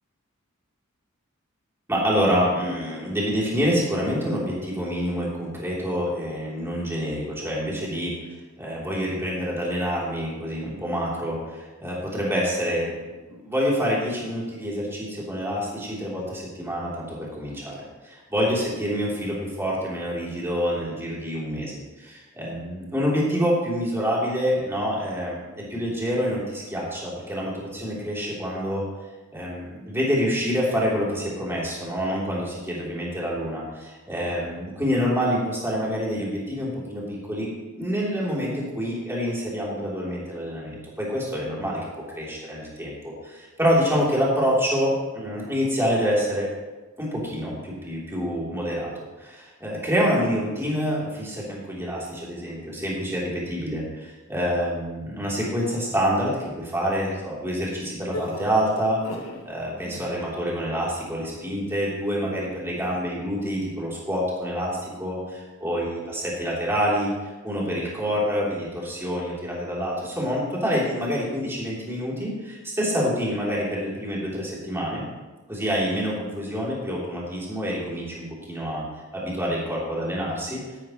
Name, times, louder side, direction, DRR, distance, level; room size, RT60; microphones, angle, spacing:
voice 1, 1.9-8.1 8.6-12.9 13.2-28.8 29.3-41.8 42.1-46.5 47.0-48.9 49.2-59.0 59.4-67.1 67.4-75.1 75.5-78.8 79.1-80.6, equal, 10° right, -6 dB, 3.3 m, -27 dB
sound 1, 58.1-59.4 59.8-60.3, left 1 dB, 90° left, 1.7 m, -36 dB
13.5 x 11.5 x 3.1 m, 1.2 s
head